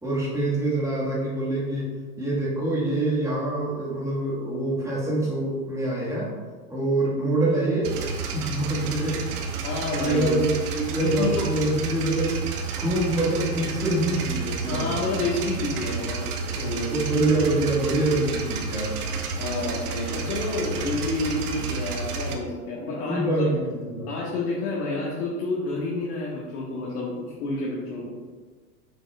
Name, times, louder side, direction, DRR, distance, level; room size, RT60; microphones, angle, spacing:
voice 1, 0.0-6.3 6.7-8.0 8.3-9.3 9.6-12.4 12.8-15.0 16.9-19.0 23.0-24.1, right 2 dB, 5° right, -6 dB, 1.7 m, -25 dB
sound 1, 7.8-22.4, right 4 dB, 75° right, 1.0 m, -31 dB
voice 2, 9.6-10.5 11.0-11.5 14.7-16.9 19.3-23.2 24.1-28.1, left 2 dB, 65° left, -5 dB, 1.5 m, -29 dB
6.4 x 6.0 x 2.4 m, 1.5 s
hypercardioid pair, 115°, 47 cm